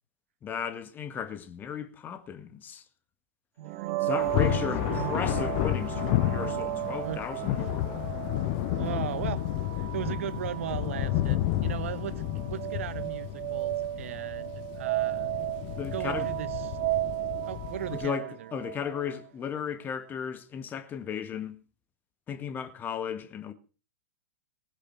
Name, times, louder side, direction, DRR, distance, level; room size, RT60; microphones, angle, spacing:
voice 1, 0.4-2.8 4.0-8.2 15.8-16.3 17.9-21.6 22.3-23.5, left 8 dB, 25° left, 2.0 m, -35 dB
sound 1, 3.6-19.3, right 17 dB, 40° right, 0.9 m, -34 dB
voice 2, 3.6-4.3 4.9-5.1 7.0-7.6 8.8-9.4 9.8-15.3 15.9-16.8 17.5-18.5, right 10 dB, 60° right, 1.2 m, -37 dB
Thunder, 4.2-18.1, left 15 dB, 45° left, 0.9 m, -31 dB
19.5 x 8.0 x 6.1 m
figure-of-eight pair, 100°, 8 cm